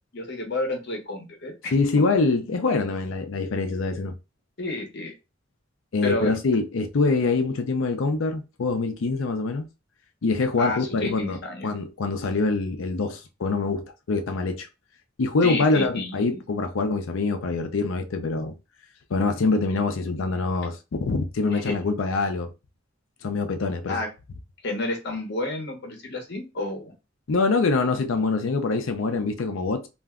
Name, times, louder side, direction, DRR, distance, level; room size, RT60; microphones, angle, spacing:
voice 1, 0.1-1.7 4.6-5.1 6.0-6.4 10.6-11.7 15.4-16.4 21.5-21.8 23.9-24.1 24.6-26.9, left 2 dB, 60° left, 0.9 m, -30 dB
voice 2, 1.7-4.1 5.9-9.7 10.2-14.7 15.2-18.5 19.1-22.5 23.2-24.0 27.3-29.9, left 3 dB, 90° left, 0.5 m, -24 dB
2.5 x 2.2 x 3.5 m
head